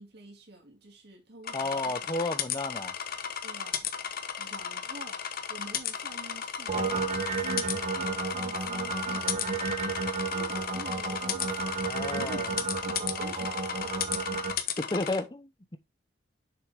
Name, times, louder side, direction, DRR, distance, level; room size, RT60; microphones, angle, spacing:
voice 1, 0.0-2.1 3.4-3.9 4.4-5.2 5.5-7.0 7.4-11.8 12.1-14.2, right 1 dB, 65° right, 2.6 m, -48 dB
sound 1, 1.4-15.2, left 8 dB, 55° left, 1.0 m, -35 dB
voice 2, 1.5-2.9 11.9-12.5 14.8-15.8, left 2 dB, 25° left, 0.9 m, -32 dB
sound 2, 6.7-14.5, right 4 dB, 40° right, 1.5 m, -32 dB
7.0 x 6.1 x 3.4 m
head